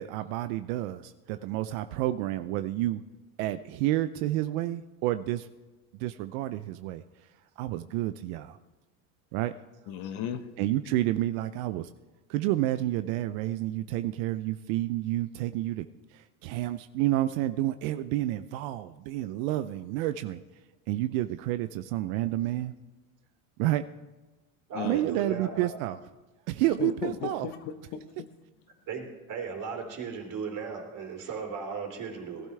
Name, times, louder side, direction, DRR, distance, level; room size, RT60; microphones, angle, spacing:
voice 1, 0.0-3.0 3.4-5.5 6.0-7.0 7.6-8.6 9.3-9.5 10.6-11.9 12.3-15.9 16.1-20.4 20.9-22.7 23.6-23.8 24.8-26.0 26.5-27.5, right 14 dB, 75° right, 11 dB, 0.6 m, -29 dB
voice 2, 9.9-10.4 24.7-25.0 26.7-28.3, left 9 dB, 65° left, 9 dB, 1.2 m, -36 dB
voice 3, 24.7-25.7 28.9-32.5, right 5 dB, 45° right, 1 dB, 3.2 m, -36 dB
18.5 x 12.0 x 3.3 m, 1.2 s
supercardioid pair, 100°, 42 cm